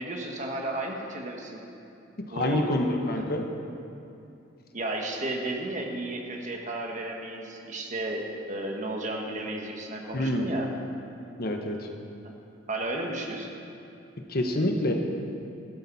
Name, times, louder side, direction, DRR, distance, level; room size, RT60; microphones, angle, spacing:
voice 1, 0.0-1.6 2.3-2.7 3.1-3.2 4.7-10.7 12.7-13.5, right 2 dB, 40° right, 1 dB, 1.7 m, -33 dB
voice 2, 2.3-3.4 10.1-10.5 11.4-11.9 14.3-14.9, left 1 dB, 55° left, 3 dB, 1.2 m, -27 dB
16.0 x 13.0 x 4.2 m, 2.6 s
head